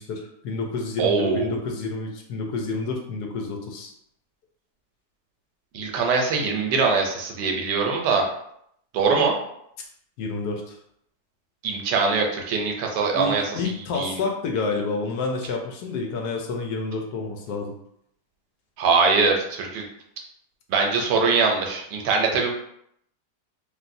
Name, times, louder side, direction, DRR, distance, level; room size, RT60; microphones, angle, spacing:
voice 1, 0.0-3.9 10.2-10.8 13.1-17.7, left 3 dB, 75° left, 2 dB, 1.1 m, -29 dB
voice 2, 1.0-1.5 5.7-8.3 8.9-9.3 11.6-13.4 14.0-14.1 18.8-19.8 20.7-22.5, right 4 dB, 80° right, 1 dB, 1.2 m, -22 dB
3.3 x 2.5 x 2.5 m, 0.73 s
omnidirectional pair, 1.9 m